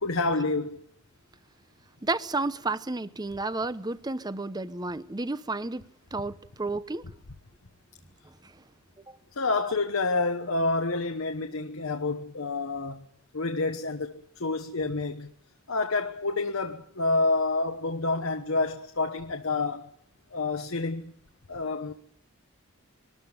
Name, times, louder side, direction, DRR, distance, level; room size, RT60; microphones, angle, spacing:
voice 1, 0.0-0.8 9.4-13.1 13.3-15.3 15.7-19.9 20.3-21.1 21.5-21.9, left 3 dB, 70° left, 1.2 m, -28 dB
voice 2, 2.0-7.1 8.4-8.5 9.1-9.2, right 3 dB, 20° right, 0.7 m, -31 dB
23.0 x 13.5 x 9.4 m
head